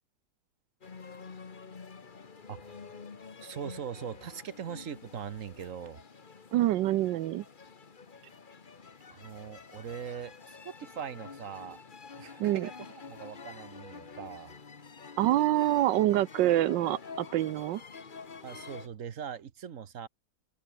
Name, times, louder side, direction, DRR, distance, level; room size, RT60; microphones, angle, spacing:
sound 1, 0.8-18.9, left 5 dB, 30° left, 1.2 m, -48 dB
voice 1, 3.4-6.0 9.1-11.8 12.2-14.5 18.4-20.1, right 8 dB, 50° right, 1.3 m, -41 dB
voice 2, 6.5-7.4 12.4-12.7 15.2-17.8, right 14 dB, 80° right, 1.4 m, -26 dB
open air
omnidirectional pair, 1.9 m